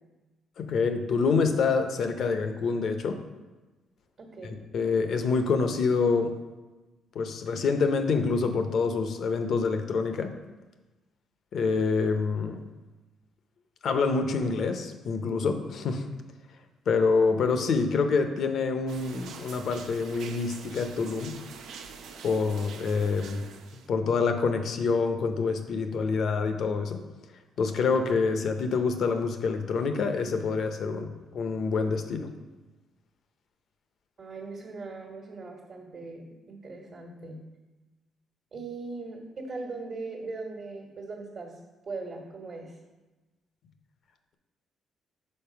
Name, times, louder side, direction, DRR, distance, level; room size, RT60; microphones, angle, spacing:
voice 1, 0.6-3.2 4.4-6.3 7.1-10.3 11.5-12.6 13.8-16.1 16.9-21.3 22.2-23.4 23.9-27.0 27.6-31.1 31.3-32.3, left 4 dB, 65° left, 7 dB, 0.7 m, -26 dB
voice 2, 4.2-4.6 34.2-37.4 38.5-41.5 41.9-42.7, right 3 dB, 50° right, 0 dB, 1.3 m, -39 dB
sound 1, 18.9-23.9, right 6 dB, 80° right, 0.5 m, -45 dB
5.3 x 4.2 x 5.7 m, 1.2 s
cardioid pair, 90°, 0 cm